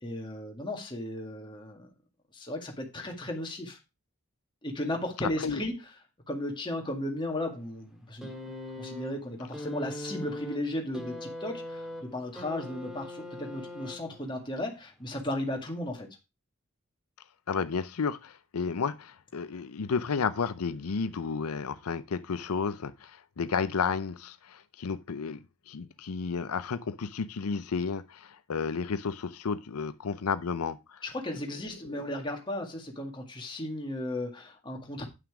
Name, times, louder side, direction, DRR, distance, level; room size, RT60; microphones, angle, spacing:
voice 1, 0.0-1.9 2.3-3.8 4.6-5.8 6.3-8.4 8.8-16.1 31.0-35.1, left 1 dB, 20° left, 2.0 m, -35 dB
sound 1, 8.2-14.4 15.4-15.5, left 1 dB, ahead, 1.8 m, -41 dB
voice 2, 17.5-31.0, left 5 dB, 90° left, 0.6 m, -32 dB
9.5 x 6.0 x 4.8 m
head